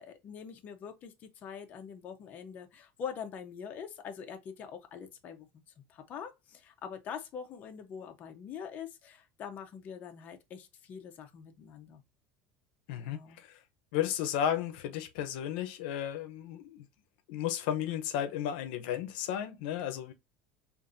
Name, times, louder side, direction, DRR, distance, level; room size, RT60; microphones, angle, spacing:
voice 1, 0.0-5.5 5.9-12.0 13.0-13.4, left 7 dB, 30° left, 0.7 m, -44 dB
voice 2, 12.9-13.5 13.9-16.8 17.3-20.1, left 10 dB, 80° left, 0.7 m, -33 dB
5.2 x 2.6 x 2.5 m
cardioid pair, 170°, 5 cm